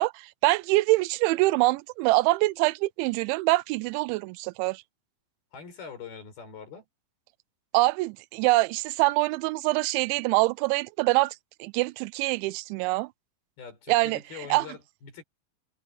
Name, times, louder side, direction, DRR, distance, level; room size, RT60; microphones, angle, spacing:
voice 1, 0.0-4.8 7.7-11.4 11.6-13.1 13.9-14.2 14.5-14.7, right 22 dB, 85° right, 2.7 m, -24 dB
voice 2, 5.5-6.9 13.6-15.2, left 6 dB, 50° left, 7.7 m, -43 dB
omnidirectional pair, 5.7 m